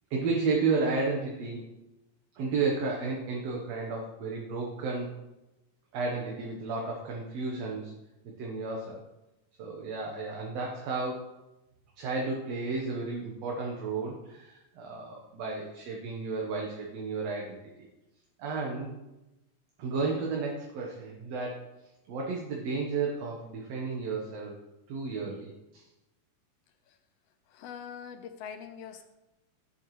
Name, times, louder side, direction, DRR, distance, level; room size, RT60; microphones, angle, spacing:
voice 1, 0.1-1.6 2.4-5.1 5.9-7.9 8.4-9.0 9.6-11.3 12.0-17.6 18.4-19.0 19.8-21.7 22.1-24.5 24.9-25.8, right 4 dB, 65° right, -1 dB, 2.2 m, -32 dB
voice 2, 27.5-29.0, left 7 dB, 80° left, 9 dB, 1.5 m, -43 dB
11.0 x 8.7 x 3.2 m, 0.96 s
omnidirectional pair, 3.3 m